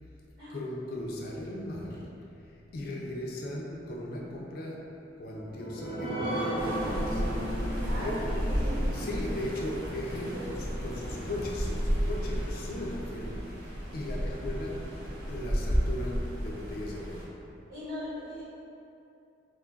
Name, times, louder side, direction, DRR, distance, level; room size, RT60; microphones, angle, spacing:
voice 1, 0.5-2.2 2.7-7.3 7.8-8.3 8.9-15.0 15.3-17.3, left 1 dB, 50° left, -2 dB, 0.4 m, -37 dB
sound 1, 5.2-12.3 12.7-12.8 13.2-13.3, equal, 15° right, 0.7 m, -37 dB
sound 2, 6.6-17.2, equal, 85° right, 0.9 m, -33 dB
voice 2, 7.9-9.0 10.3-10.9 17.7-18.4, left 1 dB, 55° right, -13 dB, 1.0 m, -39 dB
2.5 x 2.3 x 3.8 m, 2.7 s
head